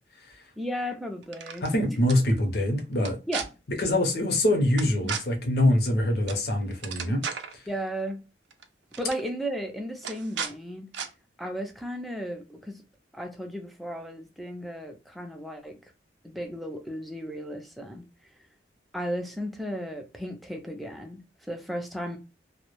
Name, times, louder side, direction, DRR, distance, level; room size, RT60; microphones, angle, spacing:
voice 1, 0.6-2.0 3.3-3.5 5.0-5.1 7.7-8.2 9.0-10.9 11.4-12.8 13.1-15.7 16.2-18.0 18.9-21.2 21.5-22.2, equal, ahead, 0.4 m, -35 dB
sound 1, 1.2-1.7 2.1-2.2 3.0-3.4 4.8-5.2 6.3-6.4 6.7-7.5 8.5-8.6 8.9-9.2 10.0-10.5 10.9-11.1, right 7 dB, 75° right, 0.4 m, -34 dB
voice 2, 1.6-3.2 3.8-7.2 7.5-7.6, left 1 dB, 60° left, 0.7 m, -24 dB
2.2 x 2.0 x 2.9 m
head